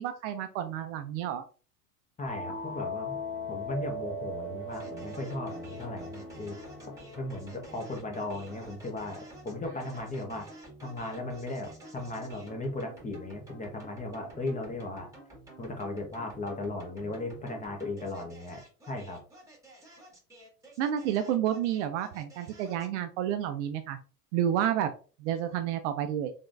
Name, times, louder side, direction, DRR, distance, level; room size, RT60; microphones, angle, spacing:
voice 1, 0.0-1.4 20.8-24.0 24.3-24.9 25.2-26.3, right 10 dB, 50° right, 8 dB, 0.5 m, -30 dB
sound 1, 2.2-8.7, left 1 dB, 75° left, 1.4 m, -39 dB
voice 2, 2.2-3.2 3.5-6.6 6.8-10.5 10.8-15.1 15.6-18.6 18.9-19.2, left 2 dB, 15° left, 3 dB, 1.0 m, -37 dB
sound 2, 4.7-23.0, right 1 dB, 5° right, 1.6 m, -50 dB
3.6 x 3.6 x 2.5 m, 0.37 s
hypercardioid pair, 95°, 49 cm